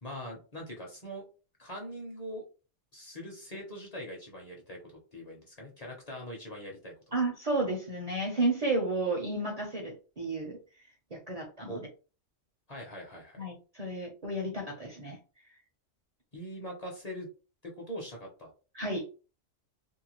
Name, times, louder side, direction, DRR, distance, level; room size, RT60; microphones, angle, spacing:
voice 1, 0.0-1.2 1.6-2.4 2.9-7.1 11.7-11.8 12.7-13.4 16.3-17.3 17.6-18.5, equal, 40° left, -1 dB, 0.7 m, -42 dB
voice 2, 7.1-10.6 11.1-11.8 13.4-15.2 18.7-19.0, right 2 dB, 40° right, -1 dB, 0.6 m, -32 dB
2.7 x 2.2 x 2.9 m, 0.34 s
omnidirectional pair, 1.2 m